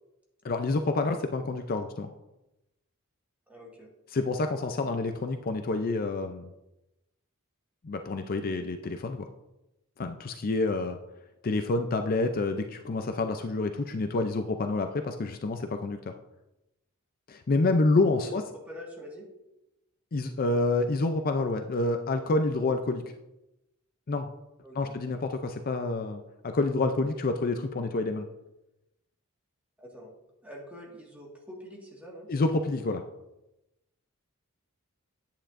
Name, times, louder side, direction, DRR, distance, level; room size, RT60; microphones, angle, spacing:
voice 1, 0.4-2.1 4.1-6.5 7.8-9.3 10.0-11.0 11.4-16.0 17.3-18.4 20.1-23.0 24.1-24.3 24.8-28.3 32.3-33.0, left 2 dB, 45° left, 7 dB, 0.5 m, -28 dB
voice 2, 3.5-3.9 18.2-19.3 24.6-24.9 29.8-30.1 30.4-32.3, equal, 5° right, -2 dB, 1.7 m, -45 dB
10.0 x 8.7 x 2.5 m, 0.94 s
head